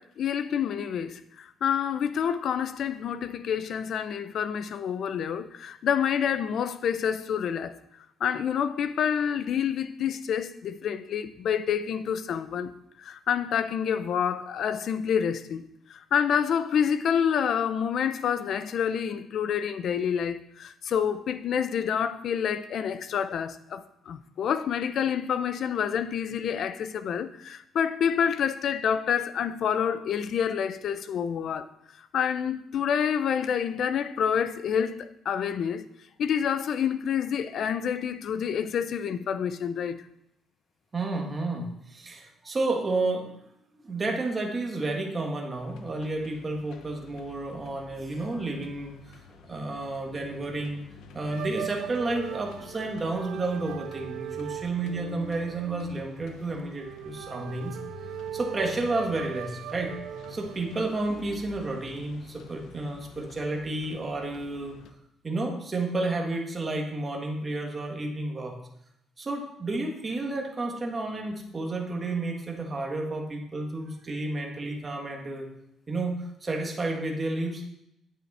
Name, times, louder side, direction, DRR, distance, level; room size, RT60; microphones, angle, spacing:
voice 1, 0.0-7.8 8.2-12.7 13.0-31.7 32.0-35.9 36.2-40.0, left 8 dB, 55° left, 0.6 m, -28 dB
voice 2, 40.9-43.3 43.8-50.8 51.1-57.8 58.3-59.9 60.3-64.8 65.2-68.5 69.2-75.5 75.9-77.6, right 2 dB, 25° right, 1.7 m, -31 dB
sound 1, 45.5-64.9, left 6 dB, 80° left, 0.9 m, -50 dB
sound 2, 51.3-60.8, right 11 dB, 85° right, 0.4 m, -39 dB
9.1 x 8.6 x 4.3 m
cardioid pair, 155°, 0 cm